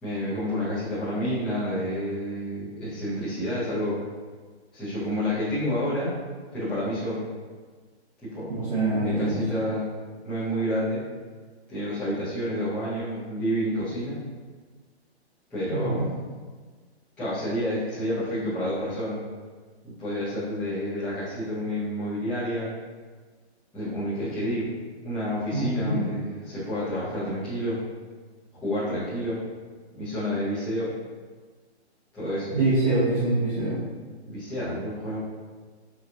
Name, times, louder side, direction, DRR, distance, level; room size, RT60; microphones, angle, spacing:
voice 1, 0.0-4.0 4.7-6.1 6.5-7.3 8.2-8.5 9.0-9.9 10.2-11.0 11.7-14.2 15.5-16.0 17.2-19.2 19.8-22.7 23.7-24.7 25.0-27.8 28.6-29.4 30.0-30.9 32.1-32.5 34.2-35.2, equal, 5° left, -15 dB, 0.6 m, -29 dB
voice 2, 8.5-9.4 15.7-16.0 25.5-26.0 32.5-33.8, right 2 dB, 30° right, -10 dB, 0.8 m, -24 dB
4.5 x 2.3 x 2.5 m, 1.4 s
hypercardioid pair, 160°, 34 cm